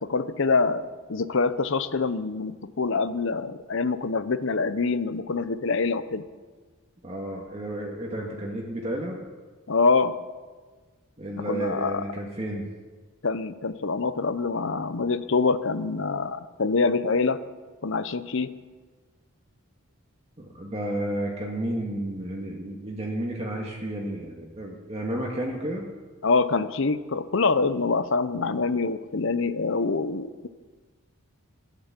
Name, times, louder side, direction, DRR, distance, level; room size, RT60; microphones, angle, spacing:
voice 1, 0.0-6.2 9.7-10.2 11.5-12.0 13.2-17.4 17.8-18.6 26.2-30.5, left 4 dB, 60° left, 13 dB, 0.7 m, -25 dB
voice 2, 7.0-9.2 11.2-12.7 20.4-25.9, right 1 dB, 30° right, -2 dB, 1.8 m, -32 dB
15.0 x 11.5 x 7.4 m, 1.4 s
head